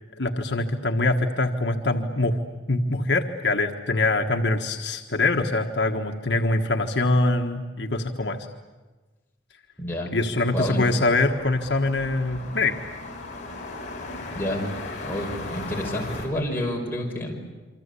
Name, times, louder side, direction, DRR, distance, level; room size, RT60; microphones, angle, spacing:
voice 1, 0.2-2.4 2.7-8.5 10.1-12.8, left 2 dB, 65° left, 2 dB, 1.5 m, -24 dB
voice 2, 9.8-10.1 10.5-10.8 14.3-14.7 15.0-17.5, left 1 dB, 10° left, -2 dB, 5.8 m, -29 dB
sound 1, 10.4-16.3, left 2 dB, 40° left, 6.2 m, -37 dB
27.5 x 25.0 x 8.4 m, 1.3 s
head